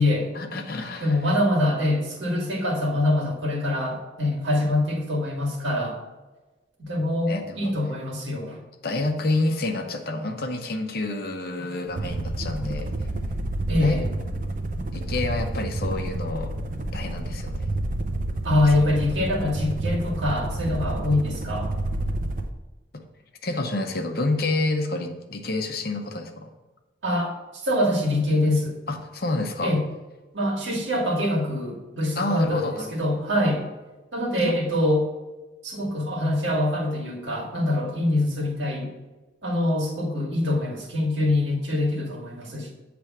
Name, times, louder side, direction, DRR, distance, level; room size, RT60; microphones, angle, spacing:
voice 1, 0.4-1.1 7.3-7.7 8.8-12.9 13.8-14.0 14.9-16.5 16.9-17.7 22.9-23.0 23.4-26.5 28.9-29.7 32.1-32.9 34.4-34.6, left 2 dB, 55° left, 5 dB, 0.8 m, -28 dB
voice 2, 1.0-6.0 6.8-8.6 13.7-14.1 18.4-21.7 27.0-28.8 29.6-29.8 30.3-33.7 34.1-35.1 35.6-38.9 39.4-42.7, left 1 dB, 90° right, -1 dB, 1.8 m, -24 dB
sound 1, 11.9-22.5, right 1 dB, 45° right, 0.6 m, -29 dB
8.0 x 3.4 x 6.0 m, 1.2 s
head